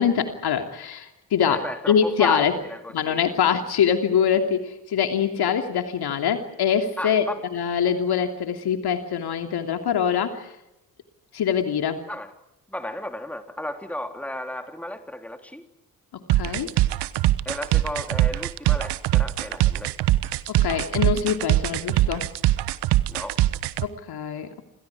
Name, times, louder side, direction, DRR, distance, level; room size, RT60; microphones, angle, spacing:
voice 1, 0.0-2.5 2.9-7.2 7.5-10.5 11.3-12.0 16.1-16.7 20.5-22.3 23.8-24.5, left 8 dB, 55° left, 5 dB, 2.9 m, -24 dB
voice 2, 1.4-3.3 7.0-7.5 12.1-12.3 12.7-15.7 17.5-19.9 23.1-23.4, left 1 dB, 5° left, 5 dB, 3.5 m, -33 dB
sound 1, 16.3-23.9, right 16 dB, 55° right, 1.2 m, -21 dB
29.0 x 27.5 x 4.9 m, 0.88 s
figure-of-eight pair, 45°, 47 cm